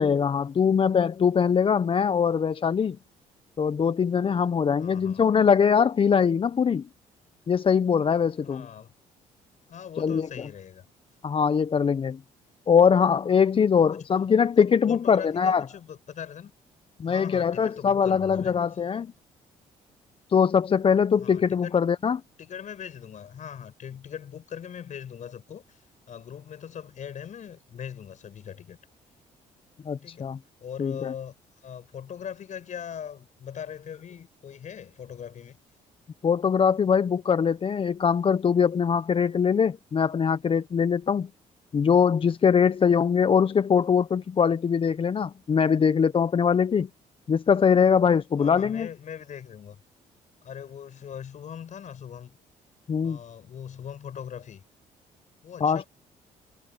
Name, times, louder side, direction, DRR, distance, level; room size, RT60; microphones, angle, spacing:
voice 1, 0.0-3.0 3.6-6.9 7.5-8.7 10.0-10.5 11.2-12.2 12.7-15.6 17.0-19.1 20.3-22.2 29.9-30.4 30.8-31.1 36.2-41.3 41.7-46.9 47.3-48.9 52.9-53.2 55.6-55.8, left 7 dB, 40° left, 0.7 m, -22 dB
voice 2, 4.8-5.2 8.4-8.9 9.7-10.8 13.7-14.0 14.6-16.5 17.1-18.6 21.2-21.8 22.4-25.8 26.1-28.8 30.0-30.3 30.6-31.4 31.6-35.6 48.3-49.8 50.4-52.3 53.0-54.6 55.4-55.9, left 8 dB, 55° left, 6.7 m, -40 dB
supercardioid pair, 75°, 15 cm